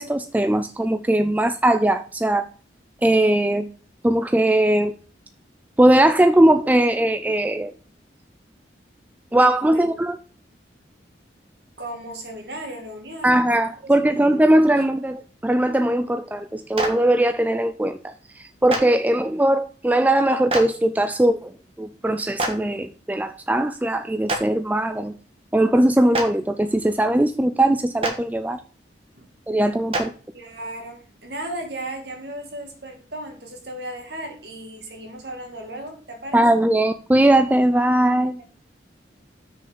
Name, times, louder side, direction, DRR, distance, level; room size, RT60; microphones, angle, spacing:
voice 1, 0.0-2.5 3.0-3.7 4.0-4.9 5.8-7.7 9.3-10.2 13.2-18.1 18.6-21.5 21.8-25.1 25.5-28.6 29.5-30.1 36.3-38.4, right 1 dB, 10° right, 10 dB, 0.3 m, -19 dB
voice 2, 11.8-14.4 14.7-14.8 29.1-29.3 29.6-29.7 30.3-36.4, right 1 dB, 60° right, 3 dB, 2.2 m, -36 dB
Clapping, 16.7-16.9 18.7-18.8 20.5-20.6 22.4-22.5 24.3-24.4 26.1-26.2 28.0-28.1 29.9-30.0, right 2 dB, 30° right, 1.4 m, -23 dB
6.5 x 5.4 x 6.7 m, 0.40 s
head